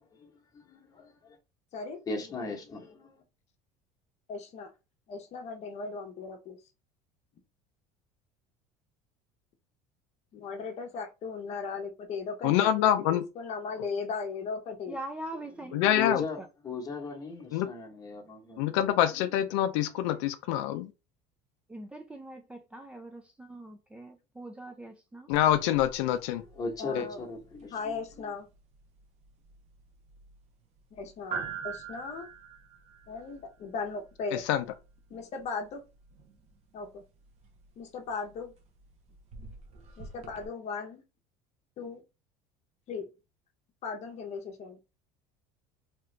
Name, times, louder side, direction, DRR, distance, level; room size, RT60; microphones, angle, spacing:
voice 1, 0.0-1.4 2.1-3.2 16.0-18.8 26.5-28.0, left 4 dB, 25° left, 1.1 m, -38 dB
voice 2, 4.3-4.7 5.1-6.6 10.3-15.0 26.8-27.2 27.7-28.5 30.9-32.3 33.1-34.4 35.1-35.8 36.7-37.0 37.8-38.5 40.0-41.0 41.8-42.0 42.9-43.0 43.8-44.8, left 4 dB, 50° left, 0.8 m, -37 dB
voice 3, 12.4-13.2 15.7-16.2 17.5-17.7 18.6-20.9 25.3-26.4 26.9-27.0 34.3-34.6, left 12 dB, 85° left, 0.4 m, -26 dB
voice 4, 14.9-16.5 21.7-25.3, right 1 dB, 10° right, 0.4 m, -43 dB
sound 1, 25.3-40.5, right 6 dB, 45° right, 0.8 m, -46 dB
2.9 x 2.3 x 3.2 m
supercardioid pair, 120°, 15 cm